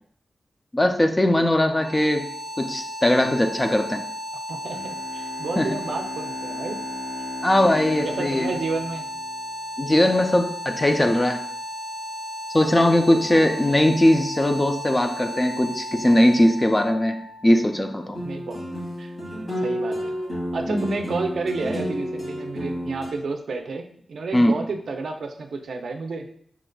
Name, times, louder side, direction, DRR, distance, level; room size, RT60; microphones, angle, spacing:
voice 1, 0.7-2.3 2.6-4.0 5.6-5.8 7.4-8.5 9.8-11.4 12.5-18.2 20.7-20.9 24.3-24.5, left 1 dB, 15° left, 5 dB, 0.4 m, -20 dB
sound 1, 1.7-18.6, left 1 dB, 20° right, 0.7 m, -35 dB
voice 2, 4.5-6.8 7.6-7.7 8.0-9.1 12.6-13.6 18.2-18.6 19.0-19.1 19.6-20.1 20.5-26.3, right 3 dB, 85° right, 4 dB, 0.5 m, -31 dB
Bowed string instrument, 4.7-10.2, left 3 dB, 70° left, 0.7 m, -39 dB
sound 2, 18.1-23.1, equal, 55° left, 1.9 m, -30 dB
5.8 x 3.8 x 2.2 m, 0.62 s
wide cardioid pair, 175°, 0 cm